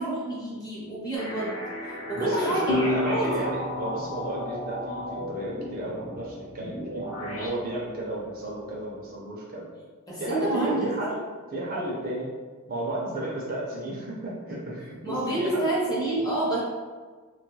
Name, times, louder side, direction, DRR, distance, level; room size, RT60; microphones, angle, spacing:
voice 1, 0.0-3.4 10.1-10.9 15.0-16.6, right 1 dB, 15° left, -6 dB, 0.7 m, -28 dB
sound 1, 1.1-7.5, left 1 dB, 80° left, 0.9 m, -36 dB
voice 2, 2.2-9.6 10.2-11.2 11.5-12.3 12.7-15.7, right 1 dB, 40° right, -4 dB, 0.6 m, -33 dB
sound 2, 2.7-6.1, left 2 dB, 55° left, 0.6 m, -32 dB
3.1 x 2.3 x 3.1 m, 1.5 s
head